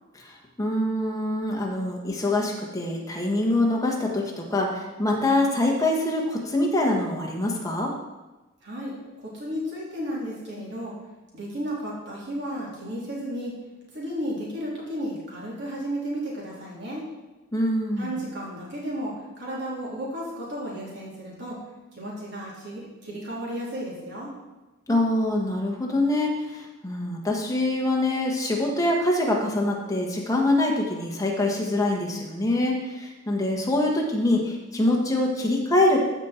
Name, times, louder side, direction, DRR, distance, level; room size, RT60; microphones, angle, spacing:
voice 1, 0.1-7.9 17.5-18.2 24.9-36.0, left 1 dB, 15° left, 0 dB, 1.4 m, -24 dB
voice 2, 8.6-8.9 9.2-10.9 11.3-13.5 13.9-17.0 18.0-21.6 21.9-24.3, equal, 60° right, -5 dB, 3.3 m, -33 dB
14.0 x 5.3 x 4.4 m, 1.1 s
head